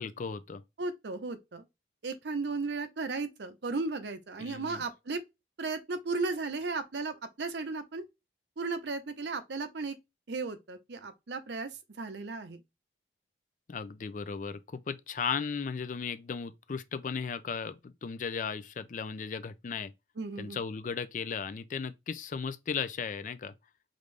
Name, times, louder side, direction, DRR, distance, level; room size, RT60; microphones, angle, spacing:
voice 1, 0.0-0.6 4.4-4.8 13.7-19.9 20.4-23.5, left 6 dB, 45° left, 0.4 m, -36 dB
voice 2, 0.8-1.6 2.0-5.2 5.6-8.0 8.6-9.9 10.3-11.7 12.0-12.6 20.2-20.6, right 3 dB, 80° right, 0.7 m, -35 dB
5.1 x 2.6 x 3.3 m
head